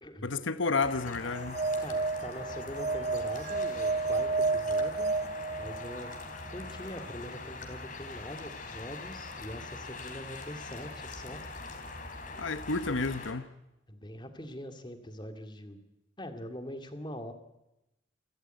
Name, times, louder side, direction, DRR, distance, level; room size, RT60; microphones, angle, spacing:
voice 1, 0.2-1.6 12.4-13.5, left 3 dB, 85° left, 1.1 m, -31 dB
sound 1, 0.8-13.3, left 3 dB, 45° left, 3.5 m, -43 dB
sound 2, 1.3-6.1, right 3 dB, 35° right, 0.7 m, -31 dB
voice 2, 1.8-5.1 5.6-6.1 6.5-11.4 13.9-15.8 16.2-17.3, equal, 25° left, 2.3 m, -43 dB
28.5 x 14.0 x 9.1 m
head